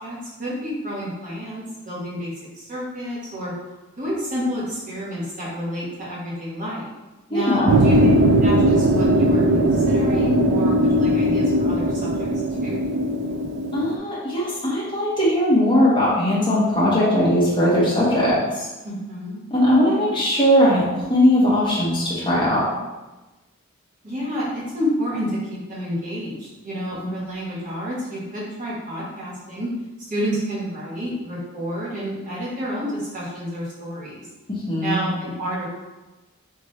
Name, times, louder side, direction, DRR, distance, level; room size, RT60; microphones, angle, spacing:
voice 1, 0.0-3.5 4.0-6.9 7.3-8.0 8.4-12.3 12.6-12.8 18.8-19.4 19.8-20.2 24.0-29.7 30.1-34.2 34.8-35.6, equal, 35° right, -7 dB, 1.3 m, -29 dB
voice 2, 7.3-7.7 13.7-18.6 19.5-20.8 21.1-22.6 27.0-27.1 34.5-35.0, equal, 20° left, -8 dB, 1.3 m, -19 dB
sound 1, 7.7-14.0, right 1 dB, 55° right, 0.4 m, -19 dB
3.8 x 3.5 x 3.2 m, 1.1 s
head